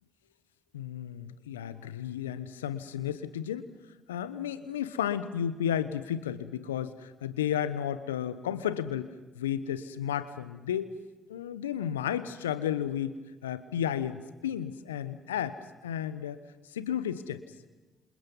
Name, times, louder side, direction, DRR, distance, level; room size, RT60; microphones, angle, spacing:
voice 1, 0.7-3.7 4.1-10.9 11.3-13.1 13.4-15.6 15.8-16.4 16.7-17.4, left 9 dB, 85° left, 13 dB, 1.1 m, -33 dB
28.5 x 27.5 x 5.5 m, 1.2 s
hypercardioid pair, 45°, 0 cm